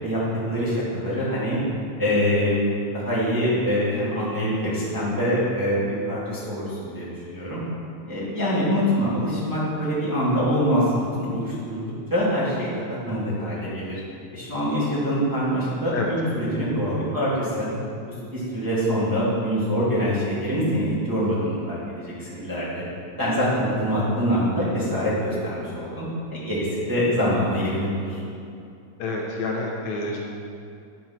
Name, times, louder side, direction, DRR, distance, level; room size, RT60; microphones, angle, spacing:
voice 1, 0.5-1.6 2.0-7.6 8.1-11.8 12.1-14.0 14.3-17.7 18.1-22.8 23.2-26.0 26.3-28.2, equal, 10° right, -9 dB, 1.7 m, -24 dB
voice 2, 29.0-30.2, left 3 dB, 70° left, -2 dB, 2.2 m, -28 dB
10.5 x 4.6 x 5.8 m, 2.5 s
omnidirectional pair, 3.4 m